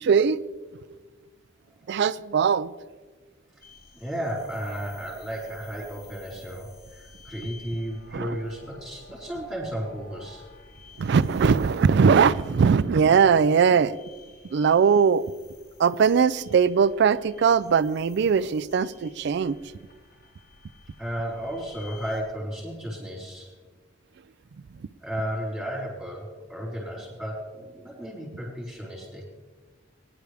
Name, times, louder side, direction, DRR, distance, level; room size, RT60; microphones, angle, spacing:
voice 1, 0.0-0.4 1.9-2.7 8.1-8.4 11.0-14.0 14.5-15.3 15.8-19.6 24.7-24.9, right 6 dB, 60° right, 16 dB, 0.4 m, -20 dB
sound 1, 3.6-22.2, left 3 dB, 50° left, 1.9 m, -52 dB
voice 2, 3.9-10.4 21.0-23.5 25.0-29.2, equal, ahead, -6 dB, 4.4 m, -34 dB
20.0 x 11.0 x 3.5 m, 1.4 s
head